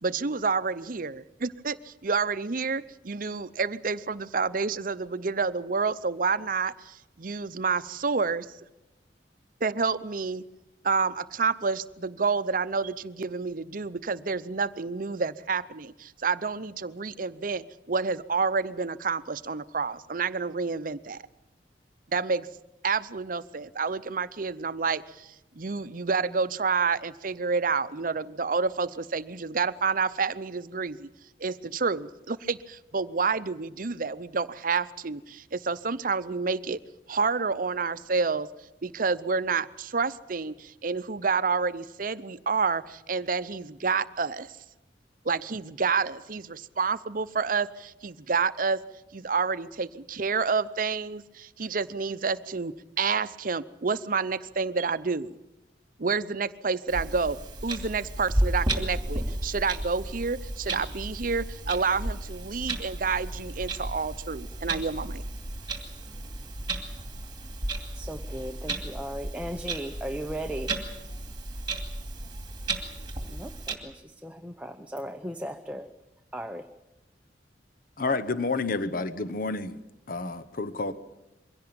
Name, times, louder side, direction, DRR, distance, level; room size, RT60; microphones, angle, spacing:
voice 1, 0.0-8.5 9.6-10.5 10.8-21.2 22.1-22.5 22.8-31.1 31.4-36.8 37.1-38.5 38.8-44.5 45.2-48.8 49.1-55.3 56.0-57.4 57.6-65.2, right 4 dB, 50° right, 14 dB, 0.7 m, -29 dB
Clock, 56.9-73.7, right 1 dB, 25° right, 2.5 m, -33 dB
voice 2, 67.9-70.7 73.3-75.9 76.3-76.7, equal, 5° right, 5 dB, 0.8 m, -37 dB
voice 3, 78.0-79.8 80.1-80.9, left 3 dB, 50° left, 11 dB, 1.0 m, -29 dB
23.0 x 16.5 x 8.7 m, 0.94 s
head